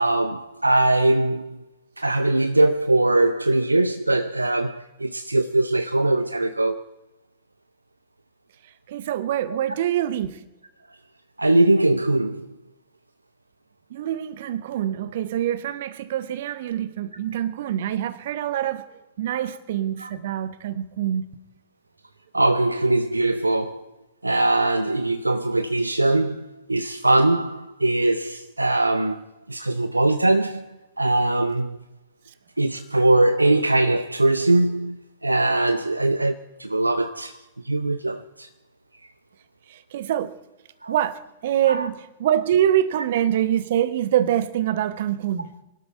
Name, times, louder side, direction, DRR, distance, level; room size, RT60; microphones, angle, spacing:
voice 1, 0.0-1.6 2.0-6.8 11.4-12.5 19.3-19.4 20.0-20.1 22.3-23.9 24.2-29.2 29.5-30.7 31.0-31.8 32.6-35.0 35.2-38.5 40.8-40.9 41.7-41.9, right 2 dB, 85° right, 0.5 m, -21 dB
voice 2, 8.9-10.4 13.9-18.9 19.2-21.3 39.7-40.3 40.9-45.5, right 11 dB, 55° right, 1.0 m, -25 dB
22.5 x 12.5 x 4.5 m
figure-of-eight pair, 90°, 0 cm